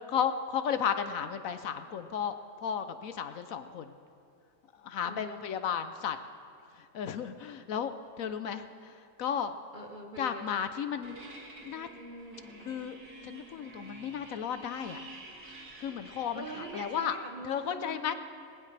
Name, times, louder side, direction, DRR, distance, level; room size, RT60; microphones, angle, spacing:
voice 1, 0.0-2.3 2.6-3.9 4.8-6.2 6.8-9.6 10.2-11.2 11.6-11.9 12.6-13.0 13.2-15.0 15.8-17.1 17.4-18.1, left 8 dB, 70° left, 9 dB, 1.1 m, -34 dB
voice 2, 5.0-5.4 9.7-10.5 16.3-18.1, right 1 dB, 35° right, 3 dB, 1.1 m, -43 dB
sound 1, 11.0-17.0, right 1 dB, 75° right, 3.1 m, -48 dB
20.0 x 20.0 x 3.3 m, 2.5 s
omnidirectional pair, 1.6 m